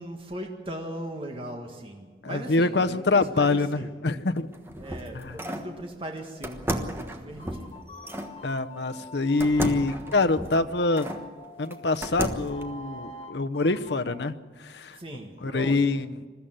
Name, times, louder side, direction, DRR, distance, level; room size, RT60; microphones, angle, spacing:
voice 1, 0.0-3.9 4.8-7.9 14.9-16.0, right 1 dB, 30° right, 2 dB, 1.7 m, -39 dB
voice 2, 2.2-4.5 5.1-5.3 8.4-11.1 11.6-14.3 14.6-15.0 15.4-16.2, left 3 dB, 70° left, 9 dB, 0.8 m, -25 dB
sound 1, 4.4-5.7 6.4-8.3 9.4-11.2 11.7-12.6, right 1 dB, 15° right, 1.3 m, -33 dB
sound 2, 7.4-12.0 12.5-14.3, left 1 dB, 30° left, 1.8 m, -45 dB
21.5 x 14.0 x 9.0 m, 1.5 s
head